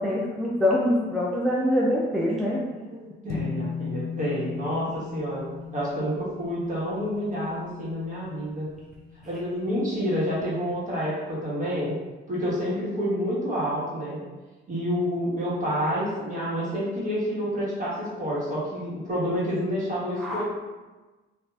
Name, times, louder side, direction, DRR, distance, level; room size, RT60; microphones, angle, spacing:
voice 1, 0.0-2.7 20.2-20.4, left 1 dB, ahead, -5 dB, 0.4 m, -24 dB
voice 2, 2.8-5.4 5.7-8.7 9.3-12.0 12.3-14.2 14.7-20.4, equal, 40° right, -7 dB, 1.3 m, -28 dB
sound 1, 3.3-9.9, left 7 dB, 80° left, 0.6 m, -38 dB
2.5 x 2.3 x 3.2 m, 1.2 s
cardioid pair, 90°, 20 cm